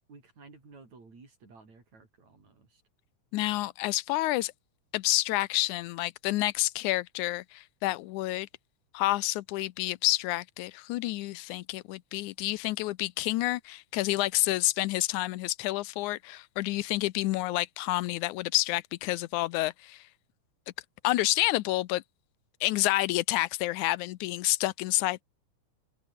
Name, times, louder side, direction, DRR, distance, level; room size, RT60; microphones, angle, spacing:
voice 1, 0.1-2.8, right 4 dB, 60° right, 7.4 m, -54 dB
voice 2, 3.3-4.5 4.9-8.5 8.9-20.0 21.0-22.0 22.6-25.2, left 18 dB, 80° left, 2.0 m, -29 dB
omnidirectional pair, 3.7 m